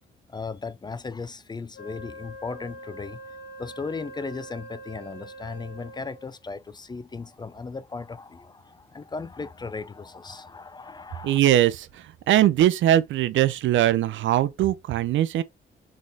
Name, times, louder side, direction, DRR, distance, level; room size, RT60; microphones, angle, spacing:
voice 1, 0.3-3.2 3.6-11.4, left 4 dB, 20° left, 0.4 m, -36 dB
Wind instrument woodwind instrument, 1.7-6.4, right 1 dB, 65° left, 1.2 m, -43 dB
voice 2, 11.2-15.4, right 12 dB, 75° right, 0.6 m, -21 dB
4.1 x 3.7 x 3.4 m
cardioid pair, 90°, 20 cm